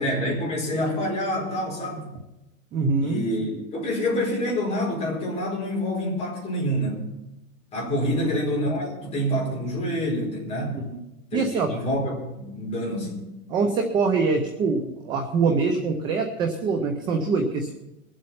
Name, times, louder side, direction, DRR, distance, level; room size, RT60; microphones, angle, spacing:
voice 1, 0.0-2.1 3.0-7.0 7.7-10.8 11.3-13.2, equal, 15° left, -4 dB, 5.0 m, -27 dB
voice 2, 2.7-3.2 8.0-8.4 10.7-11.0 11.3-11.7 13.5-17.8, right 4 dB, 10° right, 4 dB, 0.5 m, -24 dB
22.5 x 7.8 x 5.7 m, 0.95 s
hypercardioid pair, 160°, 42 cm